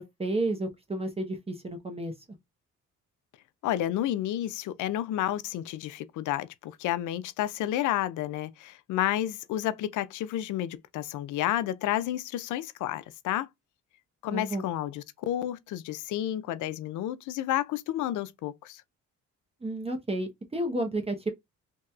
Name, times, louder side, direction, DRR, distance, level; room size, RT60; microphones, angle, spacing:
voice 1, 0.0-2.1 14.3-14.7 19.6-21.3, right 1 dB, 20° right, 0.9 m, -31 dB
voice 2, 3.6-13.5 14.2-18.8, left 12 dB, 80° left, 0.5 m, -31 dB
2.9 x 2.8 x 2.3 m
cardioid pair, 90°, 30 cm